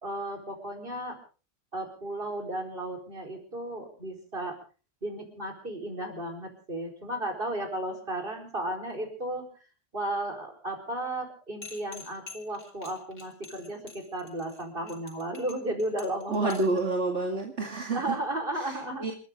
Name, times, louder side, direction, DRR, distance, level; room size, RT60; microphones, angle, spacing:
voice 1, 0.0-1.2 1.7-4.6 5.0-9.4 9.9-16.8 17.9-19.1, right 1 dB, 45° right, 4 dB, 4.7 m, -34 dB
sound 1, 11.6-16.8, left 4 dB, 90° left, 3.6 m, -47 dB
voice 2, 16.3-18.2 18.6-19.1, right 2 dB, 70° right, 1 dB, 2.6 m, -29 dB
28.5 x 13.5 x 3.7 m, 0.37 s
omnidirectional pair, 1.2 m